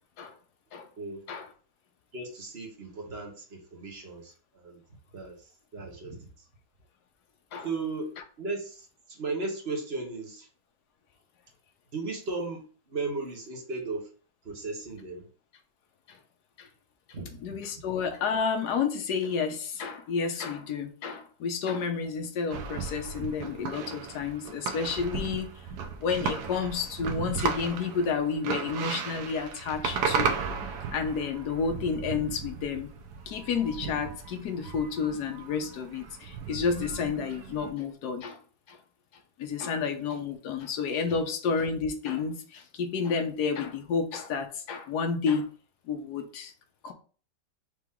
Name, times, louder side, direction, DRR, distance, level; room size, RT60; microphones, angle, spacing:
voice 1, 2.1-4.8 5.1-6.3 7.6-8.1 8.4-10.5 11.9-12.6 12.9-14.0 14.4-15.2 17.1-17.4, right 3 dB, 40° right, 0 dB, 1.2 m, -36 dB
voice 2, 17.4-25.5 26.0-30.4 30.9-32.9 33.3-38.4 38.7-38.8 39.4-45.5 45.9-46.5 46.8-46.9, left 5 dB, 70° left, 6 dB, 1.3 m, -30 dB
sound 1, 22.5-37.7, right 6 dB, 70° right, 1.2 m, -35 dB
4.7 x 3.0 x 3.6 m, 0.40 s
omnidirectional pair, 2.0 m